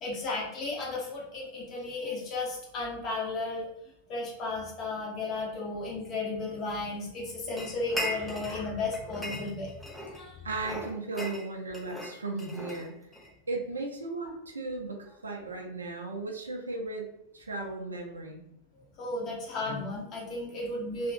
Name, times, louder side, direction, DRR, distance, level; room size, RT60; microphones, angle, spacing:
voice 1, 0.0-3.7 4.1-10.5 19.0-21.1, left 2 dB, 35° left, -4 dB, 1.2 m, -34 dB
sound 1, 7.6-8.6 8.9-10.2 10.6-13.3, left 1 dB, 5° left, 0.5 m, -38 dB
voice 2, 10.4-12.9 13.5-18.4, right 3 dB, 75° right, 1 dB, 0.5 m, -36 dB
2.8 x 2.4 x 2.6 m, 0.78 s
figure-of-eight pair, 90°, 0 cm